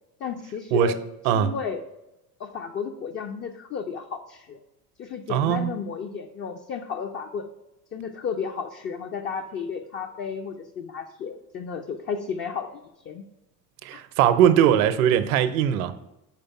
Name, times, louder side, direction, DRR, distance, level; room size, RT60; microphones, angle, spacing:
voice 1, 0.2-1.0 1.2-1.8 2.4-4.6 5.0-7.5 7.9-13.2 13.9-14.0, left 6 dB, 25° left, 0.4 m, -33 dB
voice 2, 5.3-5.7 13.8-15.9, right 9 dB, 60° right, 0.7 m, -20 dB
5.1 x 4.6 x 5.8 m
figure-of-eight pair, 70°, 49 cm